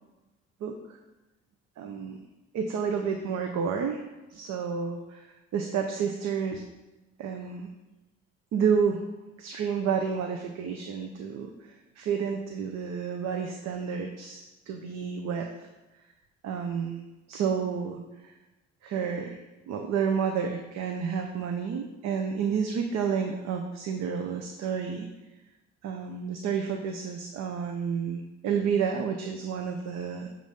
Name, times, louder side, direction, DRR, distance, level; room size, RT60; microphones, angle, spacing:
voice 1, 0.6-1.0 1.8-2.2 2.5-4.0 4.3-6.6 7.2-7.7 8.5-9.0 9.4-15.7 16.4-17.0 17.3-18.3 18.8-19.4 19.7-25.1 25.8-30.3, right 6 dB, 65° right, 4 dB, 0.7 m, -30 dB
7.9 x 2.7 x 5.0 m, 1.1 s
supercardioid pair, 60°, 29 cm